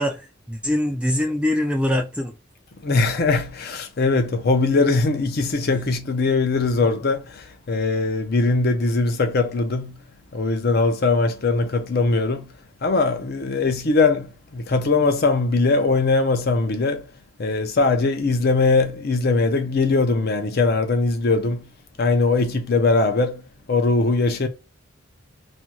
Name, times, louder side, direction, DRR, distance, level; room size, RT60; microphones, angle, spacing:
voice 1, 0.0-2.3, left 1 dB, 5° right, 0.4 m, -23 dB
voice 2, 2.8-10.0 10.3-12.5 12.8-17.1 17.4-21.7 22.0-23.4 23.7-24.5, left 3 dB, 45° left, 0.5 m, -21 dB
2.6 x 2.2 x 2.9 m
head